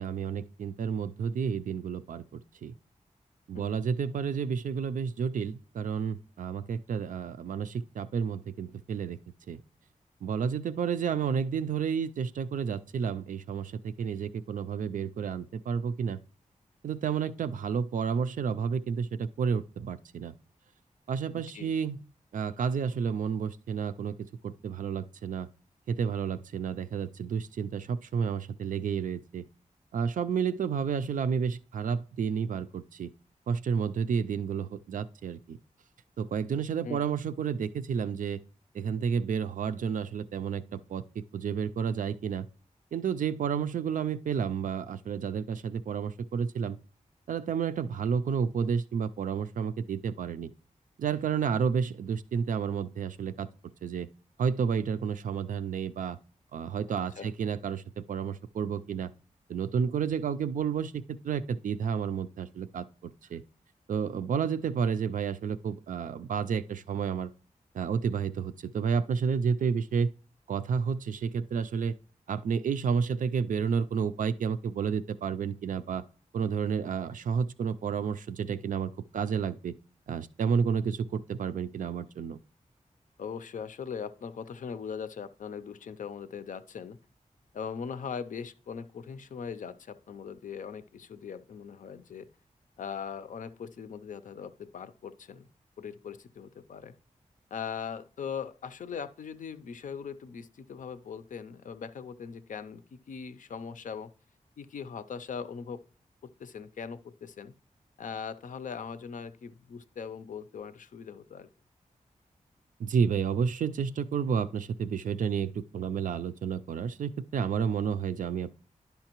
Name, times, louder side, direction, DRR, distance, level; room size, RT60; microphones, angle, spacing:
voice 1, 0.0-2.7 3.5-9.2 9.5-9.6 10.2-16.2 16.8-20.3 21.1-22.0 22.3-24.2 24.4-25.5 25.9-29.5 29.9-33.1 33.5-35.6 36.2-38.4 38.7-41.0 41.3-42.5 42.9-46.8 47.3-50.5 51.0-53.5 53.8-54.1 54.4-56.2 56.5-57.8 58.1-59.1 59.5-63.4 63.9-67.3 67.7-70.1 70.5-71.9 72.3-76.0 76.3-79.8 80.1-82.4 112.8-118.5, right 6 dB, 75° right, 0.4 m, -31 dB
voice 2, 21.3-21.7 36.8-37.0 56.9-57.3 69.6-69.8 83.2-87.0 87.5-92.3 92.8-95.5 95.8-96.9 97.5-104.1 104.6-105.8 106.2-107.5 108.0-111.5, left 6 dB, 70° left, 0.5 m, -40 dB
10.5 x 5.6 x 3.0 m
wide cardioid pair, 150°, 14 cm